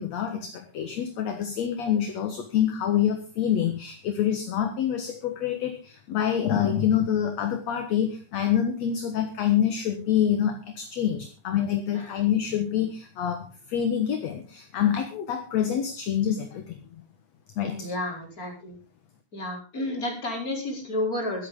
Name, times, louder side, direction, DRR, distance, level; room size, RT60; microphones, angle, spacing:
voice 1, 0.0-17.0 17.6-17.9, left 9 dB, 60° left, 6 dB, 2.3 m, -26 dB
voice 2, 17.8-18.8 19.3-21.5, left 1 dB, 25° left, 0 dB, 4.9 m, -31 dB
23.5 x 8.9 x 3.8 m, 0.33 s
omnidirectional pair, 4.0 m